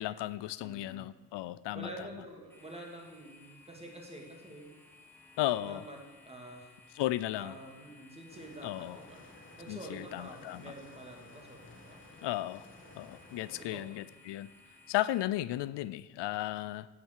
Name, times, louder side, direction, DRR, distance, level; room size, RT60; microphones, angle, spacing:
voice 1, 0.0-1.9 5.4-5.8 7.0-7.6 8.6-9.0 9.7-10.7 12.2-12.7 13.0-14.5 14.9-16.9, left 15 dB, 90° left, 17 dB, 0.5 m, -35 dB
voice 2, 0.6-1.1 1.7-4.7 5.5-6.7 7.3-9.3 9.6-12.0 13.6-14.0, right 1 dB, 15° right, 1 dB, 2.3 m, -48 dB
sound 1, 2.5-15.3, left 3 dB, 5° left, 1.3 m, -59 dB
sound 2, 8.3-13.7, left 2 dB, 30° left, 2.1 m, -55 dB
10.5 x 7.4 x 8.1 m, 1.3 s
wide cardioid pair, 135°, 40 cm